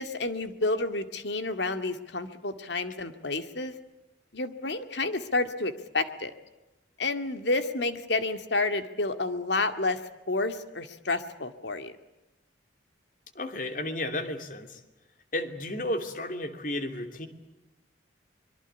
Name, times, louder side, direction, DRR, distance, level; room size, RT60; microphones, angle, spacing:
voice 1, 0.0-3.7 4.3-6.3 7.0-10.0 10.3-11.9, left 2 dB, 70° left, 9 dB, 2.1 m, -30 dB
voice 2, 13.3-14.8 15.3-17.3, left 1 dB, 45° left, 7 dB, 2.9 m, -33 dB
25.0 x 23.0 x 8.2 m, 1.0 s
head